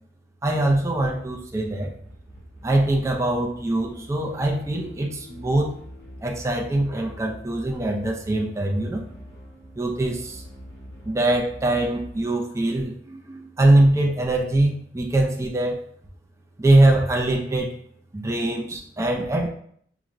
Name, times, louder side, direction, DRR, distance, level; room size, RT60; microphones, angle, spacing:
voice 1, 0.4-1.9 2.6-5.7 6.2-9.0 9.8-10.4 11.0-15.8 16.6-17.8 18.1-19.5, right 1 dB, 15° right, -1 dB, 0.4 m, -22 dB
sound 1, 0.7-12.2, equal, 65° left, 1.0 m, -45 dB
5.8 x 2.0 x 2.5 m, 0.62 s
head